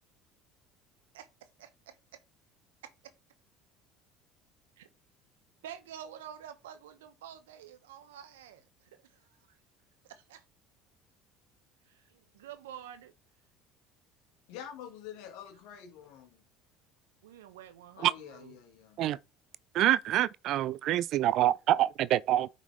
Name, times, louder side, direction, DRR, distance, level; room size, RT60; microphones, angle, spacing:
voice 1, 1.1-2.2 2.8-2.9 4.8-4.9 5.6-9.6 10.0-10.4 11.8-13.1 17.2-18.5, right 10 dB, 80° right, 0.8 m, -49 dB
voice 2, 14.5-16.4 18.0-19.0, left 9 dB, 70° left, 1.5 m, -47 dB
voice 3, 19.7-22.5, right 13 dB, 60° right, 0.3 m, -26 dB
9.1 x 4.0 x 3.2 m
hypercardioid pair, 70°, 0 cm